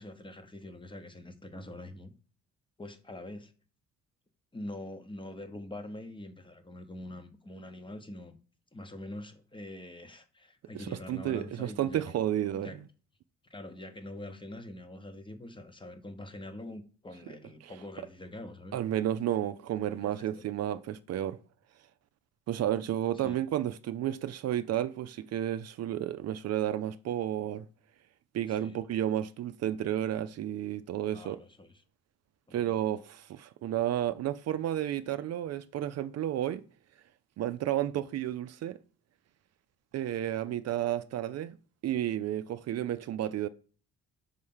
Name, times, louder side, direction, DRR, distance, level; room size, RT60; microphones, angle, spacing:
voice 1, 0.0-2.1 2.8-3.5 4.5-8.4 8.7-12.2 12.5-12.8 13.5-18.8 19.9-20.4 23.1-23.4 28.5-28.8 31.1-31.8 32.5-32.9, left 1 dB, 15° left, 0.9 m, -44 dB
voice 2, 10.7-12.7 17.6-17.7 18.7-21.4 22.5-27.7 28.3-31.4 32.5-36.6 37.4-38.8 39.9-41.6 41.8-43.5, right 11 dB, 55° right, 0.4 m, -32 dB
5.6 x 3.2 x 5.4 m
cardioid pair, 90°, 30 cm